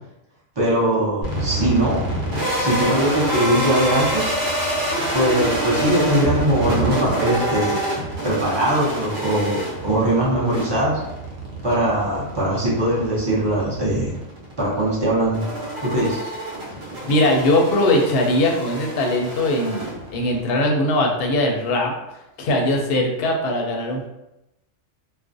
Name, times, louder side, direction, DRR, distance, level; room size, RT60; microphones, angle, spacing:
voice 1, 0.6-2.0 2.6-4.3 5.1-7.8 8.2-11.0 11.6-14.1 14.6-15.4 15.8-16.3, right 1 dB, 35° right, -7 dB, 0.4 m, -21 dB
sound 1, 1.2-20.4, right 1 dB, 60° right, 0.9 m, -27 dB
voice 2, 17.1-21.9 22.4-24.1, left 1 dB, 65° left, 0 dB, 0.7 m, -20 dB
2.4 x 2.0 x 2.5 m, 0.92 s
omnidirectional pair, 1.3 m